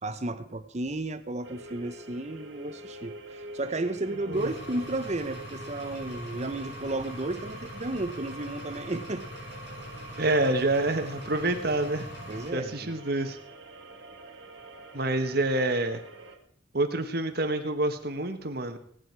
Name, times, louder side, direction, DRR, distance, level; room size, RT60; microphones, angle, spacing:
voice 1, 0.0-9.2 12.3-12.9, right 2 dB, 35° right, 11 dB, 0.9 m, -33 dB
sound 1, 1.4-16.4, right 1 dB, 80° right, 2.0 m, -46 dB
Engine, 4.3-12.5, equal, 65° left, 5.8 m, -42 dB
voice 2, 10.2-12.1 12.5-13.4 14.9-16.0 16.7-18.8, right 2 dB, 55° right, 6 dB, 1.5 m, -27 dB
18.0 x 9.4 x 4.7 m, 0.63 s
head